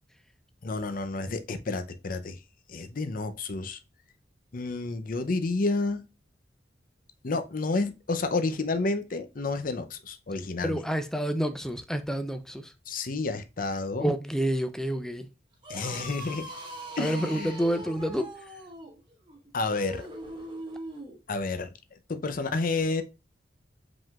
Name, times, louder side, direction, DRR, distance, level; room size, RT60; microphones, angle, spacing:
voice 1, 0.6-2.4 2.7-3.8 4.5-6.0 7.2-10.8 12.9-14.1 15.7-16.5 17.0-17.5 19.5-20.1 21.3-21.7 22.1-23.0, left 3 dB, 50° left, 0.6 m, -30 dB
voice 2, 10.6-12.7 14.0-15.3 17.0-18.3, right 1 dB, 5° left, 0.4 m, -29 dB
sound 1, 15.5-21.2, right 1 dB, 25° right, 1.2 m, -41 dB
4.9 x 3.8 x 2.3 m
head